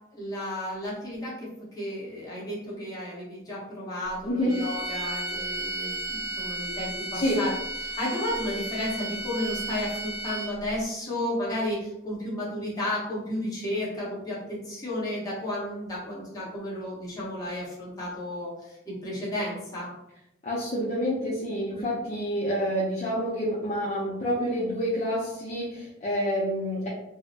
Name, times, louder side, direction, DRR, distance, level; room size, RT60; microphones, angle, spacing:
voice 1, 0.1-1.5 1.7-7.5 7.8-19.9, left 1 dB, 20° left, -7 dB, 1.1 m, -33 dB
sound 1, 4.5-10.7, right 1 dB, 20° right, 0.7 m, -34 dB
voice 2, 20.4-26.9, equal, 35° left, -7 dB, 0.6 m, -28 dB
3.6 x 2.0 x 2.8 m, 0.90 s
head